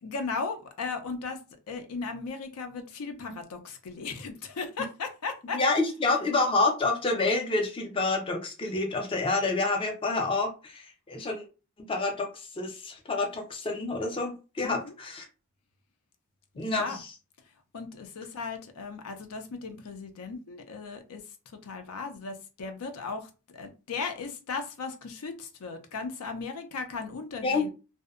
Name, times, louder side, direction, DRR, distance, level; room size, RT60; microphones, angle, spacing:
voice 1, 0.0-1.4 1.7-5.6 14.6-14.9 16.5-17.0 17.7-21.2 21.6-27.7, left 4 dB, 85° left, 7 dB, 0.5 m, -36 dB
voice 2, 5.5-11.4 11.9-15.3 16.6-17.1 27.4-27.7, left 3 dB, 25° left, 3 dB, 0.4 m, -28 dB
2.6 x 2.0 x 2.4 m, 0.32 s
head